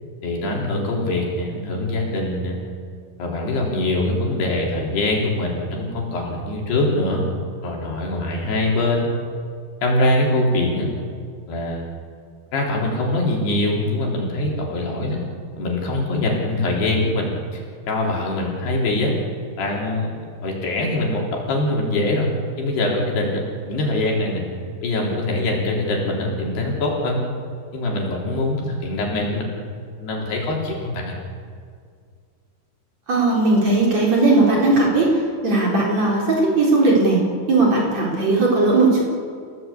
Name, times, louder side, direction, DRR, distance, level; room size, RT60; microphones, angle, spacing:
voice 1, 0.2-2.6 3.2-7.2 7.6-9.1 9.8-10.9 11.5-11.8 12.5-15.2 15.6-17.6 17.9-19.1 19.6-22.3 22.6-23.4 23.7-24.4 24.8-27.2 27.7-29.5 30.0-31.2, left 2 dB, 70° left, -1 dB, 5.6 m, -23 dB
voice 2, 33.1-35.1 35.4-37.2 37.5-39.0, right 2 dB, 40° right, -3 dB, 5.2 m, -17 dB
29.0 x 16.5 x 8.5 m, 2.2 s
omnidirectional pair, 5.0 m